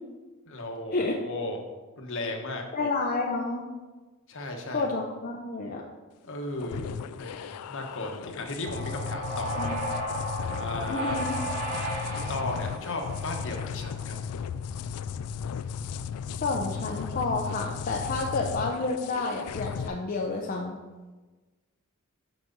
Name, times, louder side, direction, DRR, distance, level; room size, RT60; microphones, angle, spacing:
voice 1, 0.5-1.6 2.0-2.6 4.3-4.9 6.2-9.8 10.5-11.2 12.1-14.2, left 2 dB, 60° left, 3 dB, 1.2 m, -35 dB
voice 2, 2.7-3.7 4.7-5.8 9.5-9.8 10.9-11.4 16.4-20.8, left 3 dB, 40° left, 0 dB, 0.6 m, -30 dB
sound 1, 6.6-19.9, left 7 dB, 80° left, 0.3 m, -35 dB
sound 2, 8.6-13.9, right 1 dB, 70° right, 2.5 m, -34 dB
6.2 x 6.1 x 5.3 m, 1.3 s
head